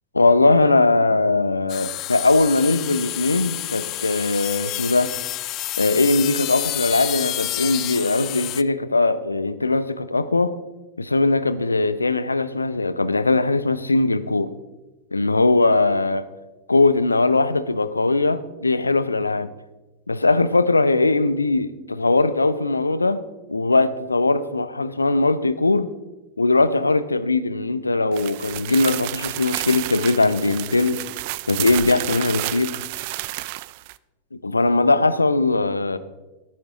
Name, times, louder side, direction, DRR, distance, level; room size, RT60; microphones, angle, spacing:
voice 1, 0.1-5.1 5.8-10.5 11.0-14.5 15.1-16.2 16.7-19.5 20.1-23.2 23.5-25.9 26.4-31.0 31.5-32.8 34.4-36.0, left 3 dB, 80° left, 0.8 m, -20 dB
sound 1, 1.7-8.6, left 16 dB, 35° left, 0.5 m, -29 dB
sound 2, 28.1-33.9, right 20 dB, 50° right, 0.4 m, -30 dB
15.5 x 13.5 x 3.8 m
figure-of-eight pair, 90°, 0 cm